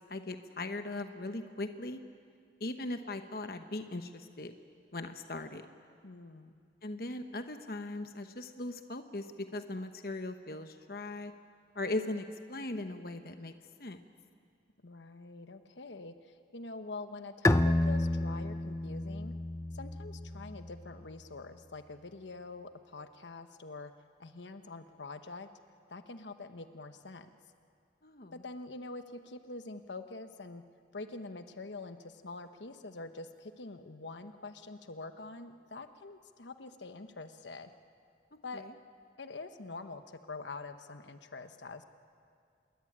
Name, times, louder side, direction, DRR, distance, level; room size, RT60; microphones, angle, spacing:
voice 1, 0.1-2.0 2.6-4.5 4.9-5.6 6.8-11.3 11.7-13.5 13.8-14.0 28.0-28.4 38.3-38.7, left 2 dB, 55° left, 7 dB, 1.1 m, -39 dB
voice 2, 6.0-6.5 14.8-19.3 19.7-23.9 24.2-25.5 25.9-27.3 28.3-30.6 30.9-37.7 38.4-38.7 39.2-41.8, left 3 dB, 85° left, 8 dB, 1.2 m, -45 dB
Bowed string instrument, 17.4-20.9, left 1 dB, 15° left, 0.6 m, -30 dB
27.0 x 22.0 x 8.8 m, 2.3 s
head